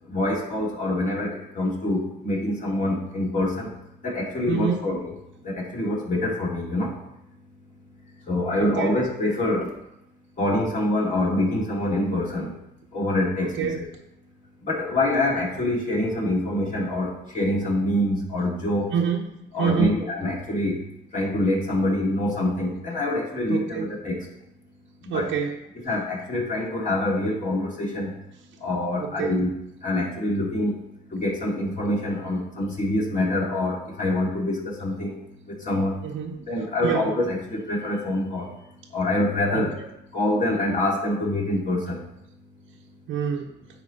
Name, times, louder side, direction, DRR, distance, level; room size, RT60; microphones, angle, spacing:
voice 1, 0.0-3.8 4.0-5.1 5.4-7.0 8.3-9.7 10.4-12.5 12.9-13.9 14.6-18.9 19.5-20.8 21.1-24.3 25.0-25.3 25.8-28.1 28.6-29.5 29.8-30.8 31.1-35.2 35.5-36.0 36.4-38.5 38.9-39.8 40.1-42.0, left 1 dB, 40° left, -3 dB, 2.3 m, -25 dB
voice 2, 4.5-4.9 8.6-8.9 13.4-13.8 18.9-19.3 19.6-20.0 23.5-23.8 25.1-25.5 29.0-29.4 36.0-36.4 36.8-37.1 39.5-39.6 43.1-43.5, right 7 dB, 80° right, -1 dB, 0.8 m, -26 dB
9.5 x 4.3 x 3.9 m, 0.84 s
cardioid pair, 90°, 20 cm